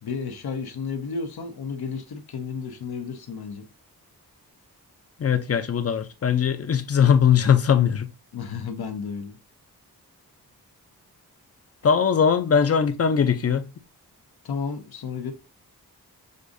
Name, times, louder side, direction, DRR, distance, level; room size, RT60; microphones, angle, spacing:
voice 1, 0.0-3.7 8.3-9.4 14.4-15.3, left 5 dB, 80° left, 0.8 m, -32 dB
voice 2, 5.2-8.1 11.8-13.7, left 7 dB, 40° left, 0.5 m, -20 dB
6.5 x 2.5 x 2.6 m
cardioid pair, 50°, 37 cm